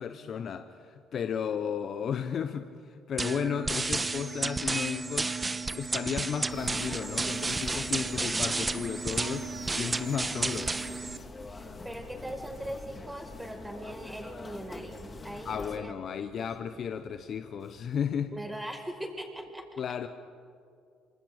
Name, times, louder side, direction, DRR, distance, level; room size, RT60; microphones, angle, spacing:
voice 1, 0.0-5.3 5.7-9.5 9.8-10.7 15.4-18.3 19.8-20.1, left 7 dB, 55° left, 9 dB, 1.1 m, -34 dB
sound 1, 3.2-11.2, right 3 dB, 25° right, 1.2 m, -32 dB
sound 2, 6.5-15.8, left 3 dB, 30° left, 2.8 m, -44 dB
Bass guitar, 8.8-18.2, equal, 15° left, 5.7 m, -59 dB
voice 2, 11.5-15.9 16.6-16.7 18.3-19.6, right 1 dB, 5° right, 3 dB, 5.7 m, -40 dB
26.5 x 26.5 x 5.2 m, 2.4 s
hypercardioid pair, 55°, 0 cm